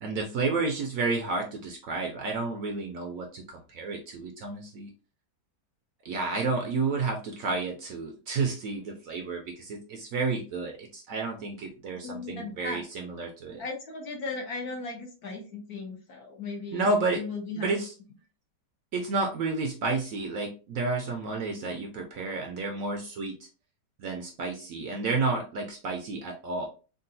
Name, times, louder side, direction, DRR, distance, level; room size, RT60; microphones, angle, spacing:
voice 1, 0.0-4.9 6.0-13.6 16.7-17.2 17.6-17.9 18.9-23.3 24.0-26.7, right 3 dB, 65° right, 2 dB, 0.9 m, -31 dB
voice 2, 12.0-12.8 13.6-17.8, left 3 dB, 65° left, 1 dB, 1.3 m, -37 dB
3.7 x 2.3 x 2.6 m, 0.35 s
omnidirectional pair, 1.8 m